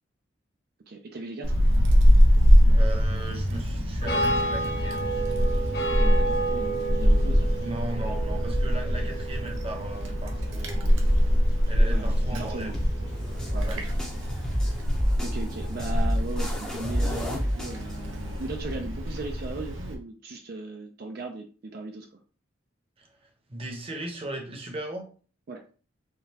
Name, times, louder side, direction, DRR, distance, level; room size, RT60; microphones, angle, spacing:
voice 1, 0.9-1.6 5.9-7.5 11.9-12.8 13.5-13.9 14.5-14.8 15.2-22.1 25.5-25.7, right 3 dB, 50° right, 4 dB, 0.5 m, -38 dB
Wind, 1.4-19.9, equal, 75° right, 0.8 m, -24 dB
voice 2, 2.7-5.1 7.6-11.1 11.7-12.8 13.6-13.8 23.5-25.1, right 1 dB, 30° right, 2 dB, 0.9 m, -37 dB
sound 1, 4.0-14.3, right 2 dB, 55° left, 1.3 m, -33 dB
sound 2, 12.7-18.7, equal, 5° left, 0.7 m, -31 dB
3.7 x 3.4 x 2.8 m, 0.39 s
head